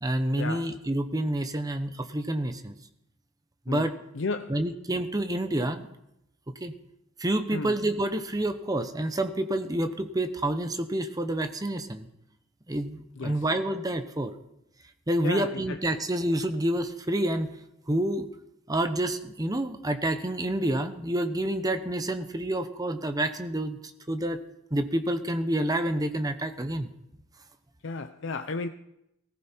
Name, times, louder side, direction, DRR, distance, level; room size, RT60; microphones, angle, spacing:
voice 1, 0.0-2.7 3.7-3.9 4.5-5.9 6.6-6.7 7.2-12.1 12.7-14.3 15.1-17.5 17.9-18.3 18.7-23.8 24.1-24.4 24.7-26.9, right 1 dB, 20° right, 1.0 m, -28 dB
voice 2, 4.2-4.6 7.5-7.7 13.2-13.4 15.2-15.8 27.8-28.7, left 3 dB, 65° left, 0.6 m, -33 dB
17.5 x 15.0 x 4.5 m
head